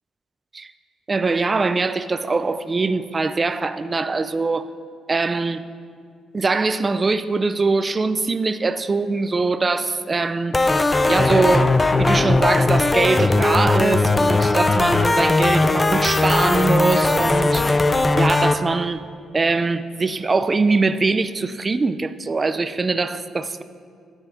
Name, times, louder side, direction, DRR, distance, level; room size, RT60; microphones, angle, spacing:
voice 1, 1.1-4.7 5.1-5.6 6.3-10.8 11.1-19.0 19.3-23.6, right 3 dB, 30° right, 12 dB, 0.5 m, -22 dB
sound 1, 10.5-18.5, left 2 dB, 20° left, 0.5 m, -18 dB
12.0 x 9.0 x 4.3 m, 2.2 s
cardioid pair, 90°, 0 cm